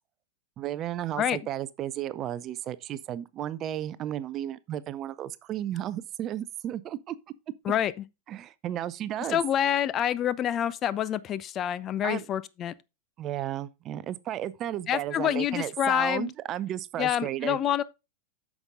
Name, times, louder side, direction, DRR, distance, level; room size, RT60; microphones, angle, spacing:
voice 1, 0.6-7.2 8.3-9.4 12.0-12.3 13.2-17.6, right 12 dB, 30° right, 0.5 m, -33 dB
voice 2, 9.3-12.7 14.9-16.3 17.0-17.8, left 10 dB, 30° left, 0.4 m, -27 dB
8.8 x 6.1 x 3.6 m
figure-of-eight pair, 90°, 0 cm